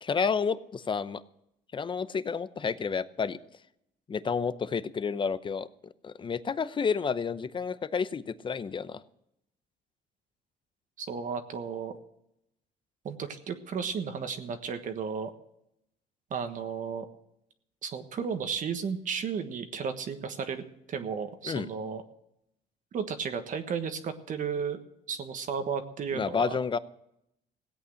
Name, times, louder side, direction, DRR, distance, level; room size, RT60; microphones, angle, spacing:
voice 1, 0.0-1.2 1.7-3.4 4.1-5.7 6.0-9.0 21.4-21.7 26.1-26.8, left 6 dB, 30° left, 15 dB, 0.7 m, -30 dB
voice 2, 11.0-11.9 13.0-15.3 16.3-17.0 17.8-20.6 20.9-22.0 22.9-24.8 25.1-26.6, right 6 dB, 50° right, 7 dB, 1.4 m, -33 dB
16.5 x 8.6 x 6.5 m, 0.79 s
cardioid pair, 110°, 17 cm